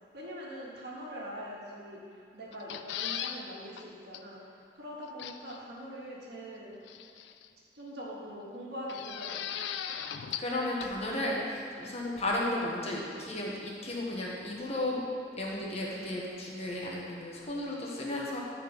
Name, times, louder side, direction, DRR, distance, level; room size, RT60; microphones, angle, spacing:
voice 1, 0.1-4.4 4.8-6.8 7.7-9.6, equal, 70° right, -5 dB, 1.8 m, -43 dB
sound 1, 2.5-3.4 3.8-3.9 4.1-4.2 5.2-5.6 6.9-7.5 8.9-10.5 10.8-10.9, left 9 dB, 75° left, 0.4 m, -38 dB
voice 2, 10.4-15.0 15.4-18.4, left 1 dB, 40° left, -3 dB, 1.4 m, -34 dB
10.0 x 4.3 x 5.2 m, 2.5 s
head